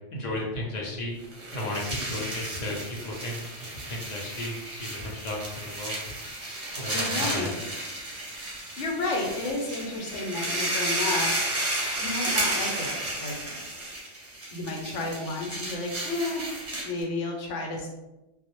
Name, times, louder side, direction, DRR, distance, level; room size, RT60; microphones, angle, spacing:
voice 1, 0.1-1.2 1.5-2.8 3.0-3.5 3.9-5.9 6.7-7.5, left 1 dB, 50° left, -2 dB, 0.5 m, -34 dB
sound 1, 1.2-17.0, right 1 dB, 45° right, 0.7 m, -32 dB
voice 2, 6.9-7.6 8.8-11.3 11.9-13.6 14.5-16.5 16.8-17.9, left 2 dB, 80° left, 0 dB, 0.9 m, -32 dB
2.1 x 2.0 x 2.9 m, 0.99 s
omnidirectional pair, 1.2 m